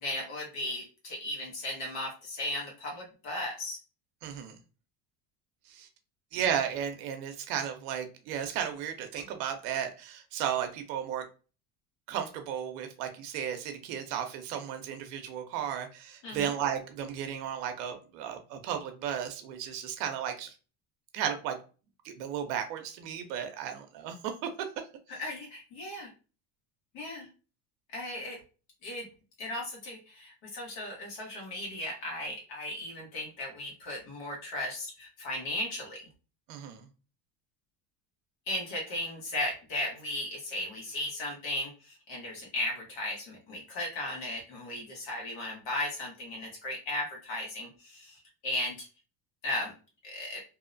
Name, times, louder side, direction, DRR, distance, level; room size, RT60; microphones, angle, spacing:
voice 1, 0.0-3.8 16.2-16.5 25.1-26.1 26.9-27.3 27.9-28.4 28.8-29.1 29.4-36.1 38.5-48.9 49.4-49.7 50.0-50.4, left 1 dB, 70° left, -1 dB, 1.1 m, -36 dB
voice 2, 4.2-4.6 5.7-5.9 6.3-11.2 12.1-20.5 21.1-21.6 22.0-24.7 36.5-36.9, right 9 dB, 85° right, 6 dB, 0.6 m, -34 dB
2.7 x 2.1 x 2.5 m, 0.34 s
supercardioid pair, 100°, 47 cm